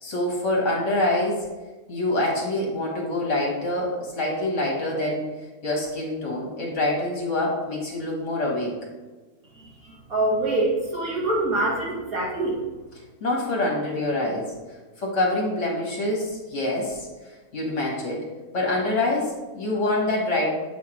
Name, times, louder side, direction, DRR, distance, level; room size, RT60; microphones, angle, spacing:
voice 1, 0.0-1.5 1.9-5.3 5.6-8.7 13.2-14.5 15.0-17.1 17.5-18.2 18.5-20.5, left 1 dB, 55° left, -2 dB, 1.8 m, -25 dB
voice 2, 9.6-12.6, right 2 dB, 70° right, -5 dB, 2.4 m, -25 dB
8.2 x 3.5 x 4.4 m, 1.2 s
omnidirectional pair, 1.6 m